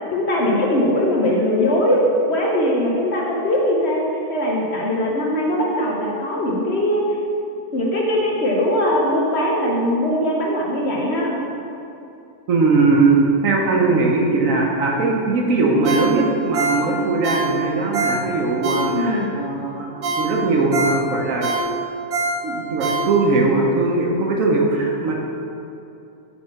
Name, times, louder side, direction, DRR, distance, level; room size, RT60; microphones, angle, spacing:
voice 1, 0.1-2.0 2.3-7.2 7.7-11.4 18.8-19.3, left 1 dB, 55° left, -2 dB, 0.8 m, -20 dB
voice 2, 12.5-21.5 22.4-25.1, right 3 dB, 65° right, 0 dB, 1.1 m, -19 dB
Ringtone, 15.8-19.3 19.7-19.8 20.0-23.5 23.9-24.0, right 2 dB, 85° right, 1.3 m, -25 dB
5.6 x 3.4 x 5.6 m, 2.7 s
omnidirectional pair, 1.6 m